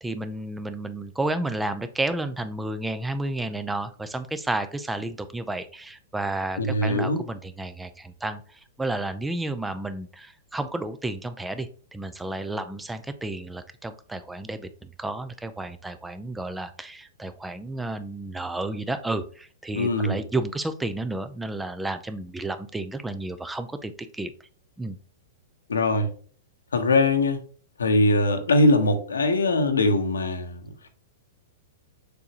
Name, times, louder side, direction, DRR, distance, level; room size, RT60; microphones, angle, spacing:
voice 1, 0.0-24.3 24.8-25.0, right 2 dB, 5° right, 0.7 m, -31 dB
voice 2, 6.6-7.2 19.7-20.2 25.7-26.1 26.7-27.4 27.8-30.9, left 2 dB, 80° left, 1.0 m, -22 dB
6.9 x 4.8 x 2.9 m
hypercardioid pair, 110°, 0 cm